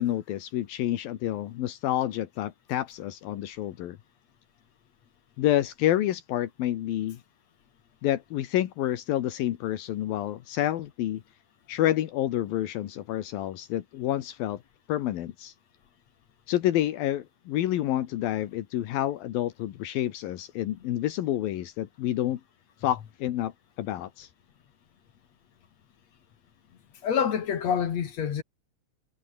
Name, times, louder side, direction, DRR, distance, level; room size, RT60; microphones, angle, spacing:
voice 1, 0.0-4.0 5.4-7.2 8.0-11.2 11.7-14.6 14.9-15.5 16.5-22.4 22.8-24.3, left 13 dB, 80° left, 3.1 m, -28 dB
voice 2, 27.0-28.4, left 7 dB, 55° left, 2.7 m, -27 dB
omnidirectional pair, 4.1 m